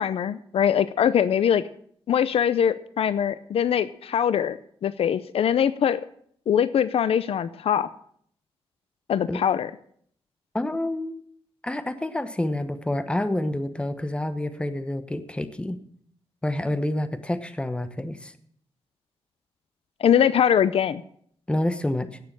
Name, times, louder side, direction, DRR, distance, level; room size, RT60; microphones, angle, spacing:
voice 1, 0.0-1.6 2.1-6.0 6.5-7.9 9.1-9.7 20.0-21.0, left 8 dB, 70° left, 15 dB, 0.6 m, -22 dB
voice 2, 10.5-11.2 11.6-15.8 16.4-18.3 21.5-22.1, left 1 dB, 10° left, 10 dB, 1.1 m, -28 dB
17.0 x 6.8 x 7.4 m, 0.64 s
wide cardioid pair, 115°, 10 cm